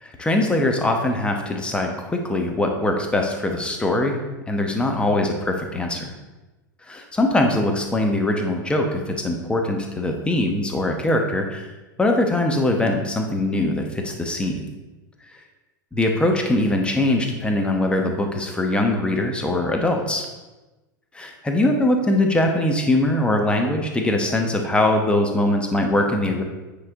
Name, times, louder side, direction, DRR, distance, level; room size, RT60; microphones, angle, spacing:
voice 1, 0.0-6.1 6.9-11.7 12.0-14.7 15.9-20.3 21.1-26.4, left 1 dB, 10° left, 3 dB, 1.0 m, -22 dB
9.1 x 3.9 x 3.6 m, 1.1 s
figure-of-eight pair, 90°, 11 cm